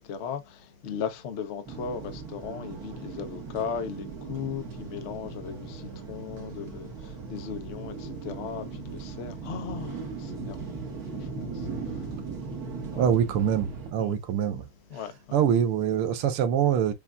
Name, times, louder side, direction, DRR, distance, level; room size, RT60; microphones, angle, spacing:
voice 1, 0.0-10.8 11.1-12.1 12.9-13.1 14.0-14.2 14.9-15.4, left 7 dB, 60° left, 0.7 m, -37 dB
sound 1, 1.7-13.9, right 4 dB, 50° right, 1.6 m, -38 dB
voice 2, 13.0-14.7 15.3-16.9, right 9 dB, 90° right, 1.7 m, -24 dB
6.8 x 2.6 x 2.2 m
omnidirectional pair, 2.4 m